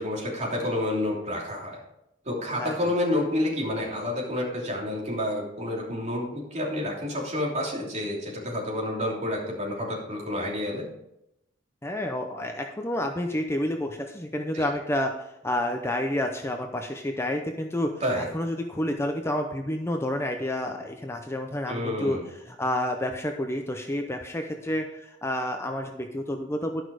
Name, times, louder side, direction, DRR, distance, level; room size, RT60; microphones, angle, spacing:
voice 1, 0.0-1.8 2.2-10.9 14.5-14.6 18.0-18.3 21.7-22.2, left 1 dB, 40° right, -3 dB, 3.1 m, -29 dB
voice 2, 11.8-15.1 15.4-22.2 22.5-26.8, left 1 dB, 15° left, 4 dB, 0.6 m, -29 dB
11.5 x 6.1 x 4.9 m, 0.84 s
head